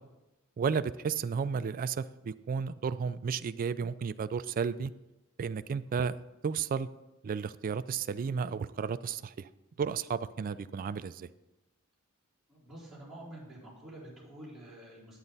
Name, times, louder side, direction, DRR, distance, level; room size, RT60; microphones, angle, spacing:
voice 1, 0.6-4.9 5.4-6.9 7.2-9.5 9.8-11.3, right 6 dB, 40° right, 15 dB, 0.3 m, -33 dB
voice 2, 12.5-15.2, right 1 dB, ahead, -10 dB, 4.0 m, -48 dB
9.3 x 8.7 x 4.0 m, 0.99 s
head